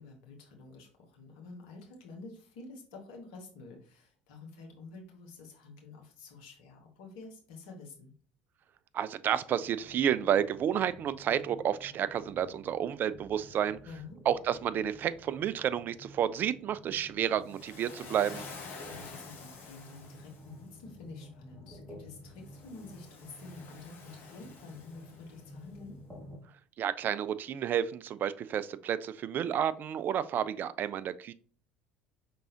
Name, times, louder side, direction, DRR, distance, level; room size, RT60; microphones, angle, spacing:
voice 1, 0.0-8.1 13.8-14.2 18.9-25.9, left 3 dB, 65° left, 1 dB, 1.4 m, -49 dB
voice 2, 8.9-13.8 14.3-18.4 26.8-31.3, right 9 dB, 40° right, 15 dB, 0.3 m, -30 dB
sound 1, 9.6-26.4, left 1 dB, 10° right, 1.5 m, -52 dB
Waves surf, 17.4-20.6 22.4-25.5, left 4 dB, 45° left, 1.3 m, -49 dB
5.3 x 3.6 x 2.8 m, 0.42 s
figure-of-eight pair, 65°, 5 cm